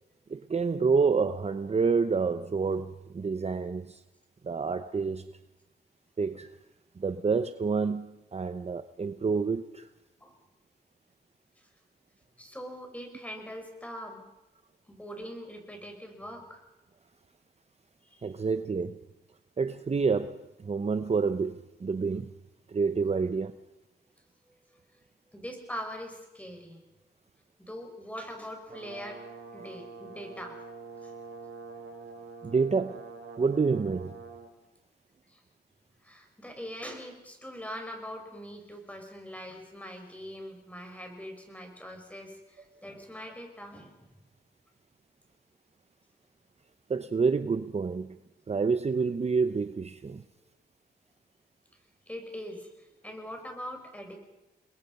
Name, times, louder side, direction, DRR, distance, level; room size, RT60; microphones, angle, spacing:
voice 1, 0.3-4.0 4.4-5.4 6.2-6.5 7.0-9.9 18.2-19.0 19.6-22.3 22.7-23.6 32.4-33.0 33.4-34.2 46.9-48.2 48.5-50.2, right 5 dB, 35° right, 0.8 m, -28 dB
voice 2, 12.4-14.2 14.9-16.6 18.1-18.3 25.3-26.8 27.6-29.2 29.5-30.5 31.0-31.1 35.3-35.4 36.0-44.2 52.1-54.2, equal, 10° left, 5.7 m, -42 dB
Brass instrument, 28.7-34.5, right 4 dB, 90° right, 2.7 m, -45 dB
30.0 x 21.0 x 5.4 m
wide cardioid pair, 90°, 18 cm